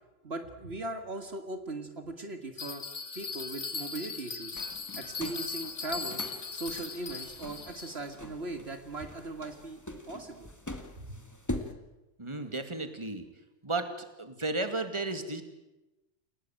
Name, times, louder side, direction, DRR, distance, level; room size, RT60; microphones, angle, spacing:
voice 1, 0.2-2.8 3.1-4.6 5.0-6.2 6.5-10.5 11.0-11.2, right 2 dB, 55° right, 7 dB, 2.1 m, -39 dB
Bell, 2.6-8.1, left 5 dB, 80° left, 2.2 m, -39 dB
sound 1, 4.5-11.7, left 1 dB, 15° left, 2.3 m, -43 dB
voice 2, 12.2-13.3 13.6-15.4, right 2 dB, 25° right, 9 dB, 2.5 m, -34 dB
29.0 x 18.5 x 9.1 m, 1.0 s
omnidirectional pair, 1.3 m